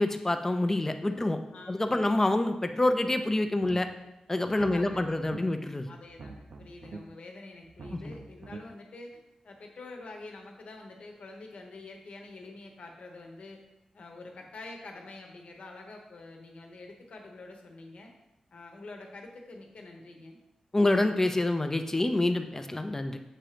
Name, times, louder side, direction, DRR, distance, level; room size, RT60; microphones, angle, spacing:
voice 1, 0.0-1.4 1.7-3.9 4.3-5.9 7.9-8.0 20.7-23.2, left 2 dB, 20° left, 7 dB, 0.5 m, -27 dB
voice 2, 1.5-2.1 4.5-5.1 5.9-9.2 9.4-13.6 13.9-18.1 18.5-20.4, left 2 dB, 65° left, 2 dB, 1.0 m, -46 dB
sound 1, 3.6-4.1 4.4-5.4 6.0-7.0 7.6-8.6, right 3 dB, 75° right, 0.6 m, -45 dB
7.5 x 2.9 x 4.9 m, 0.93 s
wide cardioid pair, 115°, 2 cm